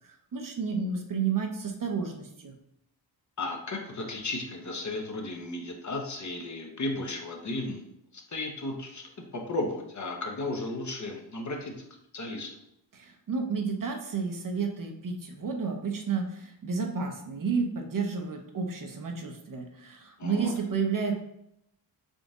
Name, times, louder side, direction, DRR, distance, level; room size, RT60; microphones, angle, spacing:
voice 1, 0.3-2.5 13.0-21.1, right 5 dB, 45° right, 3 dB, 0.8 m, -31 dB
voice 2, 3.4-11.7 12.1-12.5 20.2-20.5, left 2 dB, 40° left, 2 dB, 0.9 m, -34 dB
3.8 x 2.5 x 3.6 m, 0.78 s
cardioid pair, 55°, 45 cm